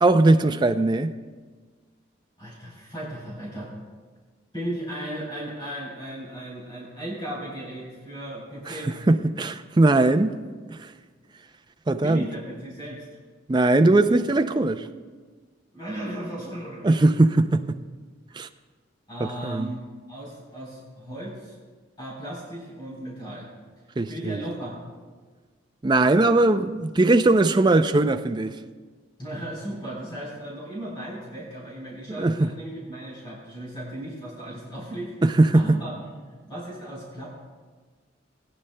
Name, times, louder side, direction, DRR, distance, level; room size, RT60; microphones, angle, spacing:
voice 1, 0.0-1.1 8.7-10.3 10.7-10.9 11.9-12.2 13.5-14.9 16.8-17.8 18.3-18.5 19.2-19.7 24.0-24.4 25.8-28.5 32.1-32.5 35.2-35.8, right 2 dB, 20° right, 0.4 m, -20 dB
voice 2, 2.4-3.7 4.5-9.0 12.0-13.1 15.7-17.0 19.1-19.8 20.1-21.6 22.0-23.5 24.1-24.8 29.2-35.9 36.3-37.3, right 1 dB, 25° left, 3.6 m, -36 dB
20.5 x 9.9 x 2.2 m
head